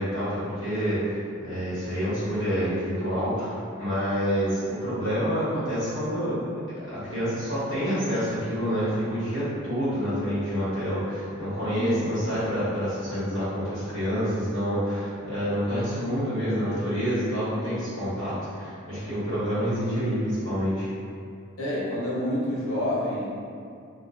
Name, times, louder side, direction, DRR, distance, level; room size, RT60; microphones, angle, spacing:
voice 1, 0.0-6.4 6.8-20.9, equal, 65° right, -12 dB, 1.3 m, -28 dB
voice 2, 21.6-23.3, left 1 dB, 85° left, -7 dB, 0.8 m, -28 dB
2.5 x 2.3 x 2.4 m, 2.4 s
head